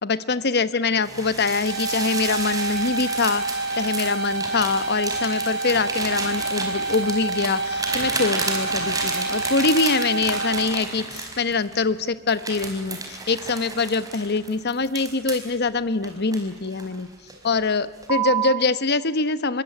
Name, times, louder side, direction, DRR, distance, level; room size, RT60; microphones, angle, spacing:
voice 1, 0.0-17.1 17.4-19.6, left 4 dB, 55° left, 14 dB, 1.1 m, -24 dB
sound 1, 1.0-11.8 12.3-15.5 16.0-17.0 17.3-17.6 18.0-18.6, right 4 dB, 20° right, 4.9 m, -31 dB
sound 2, 1.6-10.6, right 2 dB, 60° right, 3.7 m, -28 dB
26.0 x 23.0 x 9.8 m, 1.3 s
head